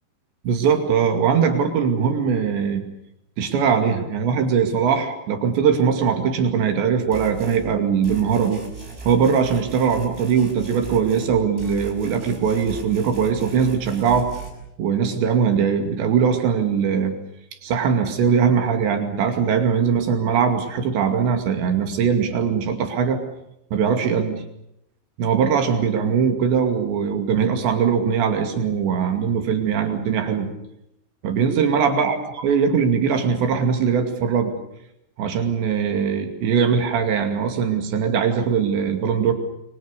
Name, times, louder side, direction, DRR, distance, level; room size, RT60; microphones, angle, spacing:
voice 1, 0.4-2.8 3.4-8.6 9.1-14.3 14.8-17.1 17.6-23.2 23.7-24.4 25.2-30.5 31.2-34.6 35.2-39.3, right 6 dB, 70° right, 6 dB, 4.6 m, -21 dB
sound 1, 7.1-7.6 8.0-11.3 11.6-14.5, right 5 dB, 20° right, 6.6 m, -38 dB
29.0 x 23.5 x 6.8 m, 0.81 s
omnidirectional pair, 5.5 m